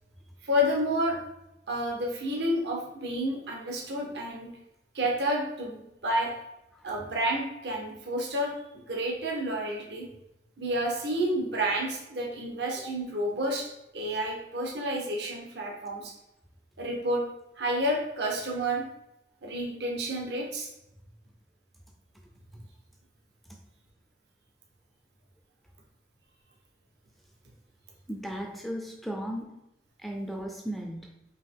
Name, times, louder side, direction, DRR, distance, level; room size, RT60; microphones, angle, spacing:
voice 1, 0.4-1.2 1.7-4.5 4.9-6.3 6.8-8.5 8.9-10.1 10.6-16.1 16.8-17.2 17.6-18.8 19.4-20.7, equal, 70° right, 0 dB, 0.8 m, -30 dB
voice 2, 28.1-29.6 30.0-31.2, equal, ahead, 2 dB, 0.3 m, -36 dB
4.6 x 2.8 x 3.5 m, 0.88 s
head